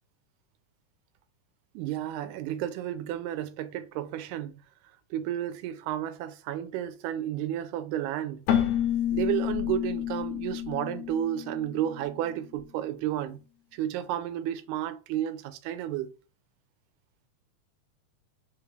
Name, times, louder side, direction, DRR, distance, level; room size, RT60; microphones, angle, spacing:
voice 1, 1.8-4.6 5.1-8.4 9.1-13.4 13.7-16.1, right 11 dB, 85° right, 2.0 m, -32 dB
Keyboard (musical), 8.5-12.1, left 10 dB, 75° left, 1.7 m, -29 dB
5.2 x 2.4 x 3.2 m
omnidirectional pair, 3.5 m